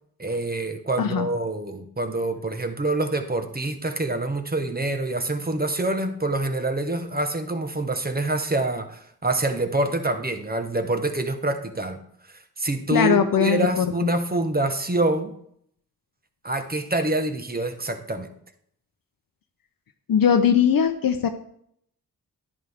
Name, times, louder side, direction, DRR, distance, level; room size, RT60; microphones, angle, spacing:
voice 1, 0.2-12.0 12.3-15.3 16.4-18.3, right 2 dB, 25° right, 7 dB, 1.3 m, -26 dB
voice 2, 12.9-13.9 20.1-21.3, left 8 dB, 65° left, 6 dB, 0.8 m, -20 dB
10.5 x 10.0 x 3.6 m, 0.69 s
cardioid pair, 55°, 37 cm